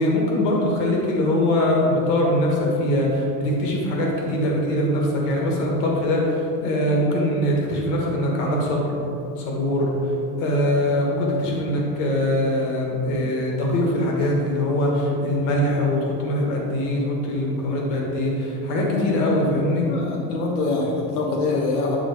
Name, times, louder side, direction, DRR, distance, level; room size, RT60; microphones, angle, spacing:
voice 1, 0.0-8.9 9.4-10.1 10.4-19.9, left 1 dB, 55° left, -1 dB, 1.7 m, -22 dB
voice 2, 18.9-19.3 19.9-22.0, left 3 dB, 90° left, -1 dB, 1.3 m, -25 dB
9.2 x 3.9 x 4.9 m, 2.7 s
supercardioid pair, 170°, 44 cm